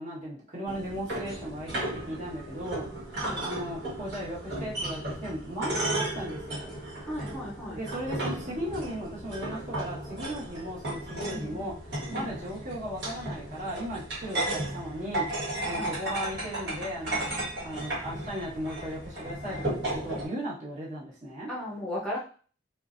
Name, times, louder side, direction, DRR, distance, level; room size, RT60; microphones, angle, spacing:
voice 1, 0.0-2.9 3.4-6.7 7.4-15.3 15.6-17.3 17.6-21.5, equal, 45° right, -8 dB, 1.5 m, -36 dB
sound 1, 0.7-20.2, right 1 dB, 65° right, 1.5 m, -35 dB
voice 2, 7.0-7.8 11.2-11.6 12.0-12.3 15.7-15.9 21.5-22.2, left 1 dB, 5° left, -5 dB, 0.7 m, -36 dB
4.3 x 2.3 x 2.6 m, 0.41 s
head